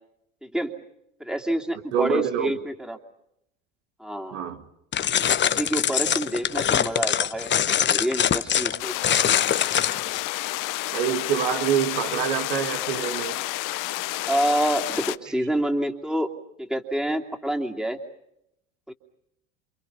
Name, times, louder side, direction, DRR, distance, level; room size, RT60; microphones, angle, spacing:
voice 1, 0.4-0.8 1.2-3.0 4.0-4.4 5.4-8.9 14.3-16.3 16.6-18.0 18.9-19.0, right 1 dB, ahead, 2.9 m, -27 dB
voice 2, 1.9-2.7 4.3-4.6 10.9-13.4, right 9 dB, 80° right, 2.4 m, -26 dB
sound 1, 4.9-10.2, left 9 dB, 30° left, 0.9 m, -23 dB
sound 2, 8.8-15.2, left 18 dB, 60° left, 1.0 m, -30 dB
28.5 x 27.5 x 5.8 m
supercardioid pair, 95°, 36 cm